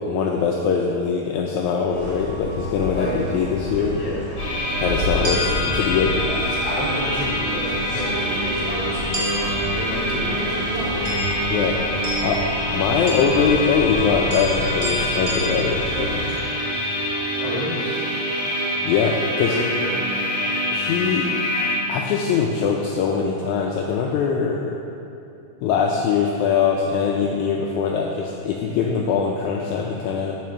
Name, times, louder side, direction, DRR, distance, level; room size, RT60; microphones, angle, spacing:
voice 1, 0.0-4.0 4.8-6.3 11.5-11.8 12.2-12.4 12.7-16.3 18.8-19.6 20.7-21.3 21.9-24.8 25.6-30.4, left 6 dB, 90° left, 0 dB, 1.7 m, -22 dB
sound 1, 1.9-16.4, equal, 45° right, 1.7 m, -29 dB
sound 2, 4.4-21.7, left 1 dB, 40° left, 2.2 m, -26 dB
voice 2, 6.6-11.3 17.4-18.3 19.4-20.0, left 1 dB, 25° left, -8 dB, 0.9 m, -30 dB
7.6 x 5.0 x 6.8 m, 2.8 s
omnidirectional pair, 4.0 m